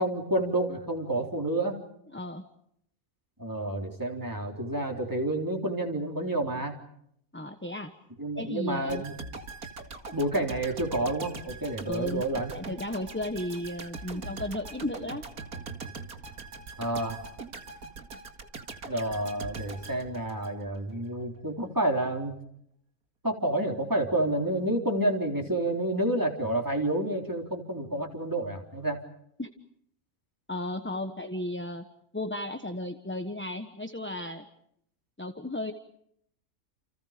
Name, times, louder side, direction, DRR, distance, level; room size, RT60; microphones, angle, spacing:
voice 1, 0.0-1.8 3.4-6.7 8.2-9.2 10.1-12.6 16.8-17.2 18.8-22.4 23.2-29.0, right 1 dB, 15° right, 2 dB, 3.8 m, -29 dB
voice 2, 2.1-2.4 7.3-7.9 8.4-9.0 11.8-12.2 12.5-15.2 29.4-29.5 30.5-31.8 32.1-34.5 35.2-35.7, left 1 dB, 10° left, 7 dB, 1.2 m, -34 dB
sound 1, 8.9-20.9 21.2-21.4, right 3 dB, 85° right, 2.7 m, -42 dB
29.5 x 29.0 x 5.2 m, 0.73 s
omnidirectional pair, 1.5 m